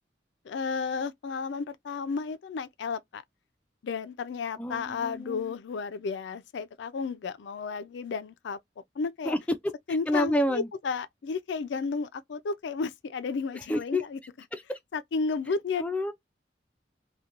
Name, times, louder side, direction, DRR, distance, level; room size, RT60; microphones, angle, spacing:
voice 1, 0.4-3.2 3.8-8.6 9.0-9.3 9.9-14.2 14.9-15.8, left 4 dB, 80° left, 0.4 m, -32 dB
voice 2, 4.6-5.6 9.3-9.4 10.1-10.7 13.7-14.0 14.5-14.8 15.8-16.1, left 1 dB, 10° left, 0.3 m, -28 dB
2.4 x 2.2 x 2.8 m
head